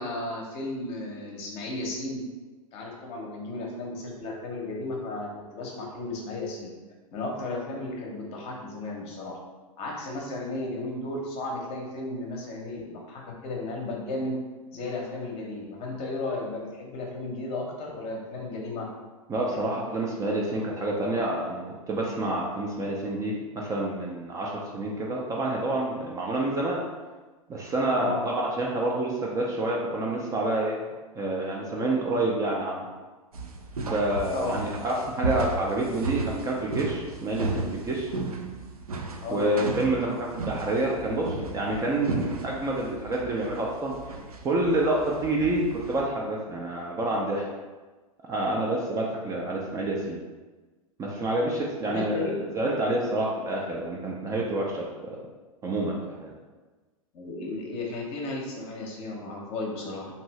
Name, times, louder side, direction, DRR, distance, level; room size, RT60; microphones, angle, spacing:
voice 1, 0.0-2.2 2.7-6.7 7.1-9.4 9.8-14.4 14.7-18.9 28.0-28.3 34.3-34.6 39.2-39.5 51.8-52.4 57.1-60.1, left 2 dB, 35° left, -1 dB, 0.7 m, -34 dB
voice 2, 19.3-26.8 27.5-30.8 31.2-32.9 33.8-38.1 39.3-44.1 44.4-47.5 48.3-50.2 51.0-52.3 52.5-55.1 55.6-56.3, right 2 dB, 15° right, -3 dB, 0.4 m, -28 dB
sound 1, 33.3-46.0, right 3 dB, 85° right, 0.4 m, -34 dB
2.7 x 2.6 x 3.1 m, 1.3 s
figure-of-eight pair, 100°, 18 cm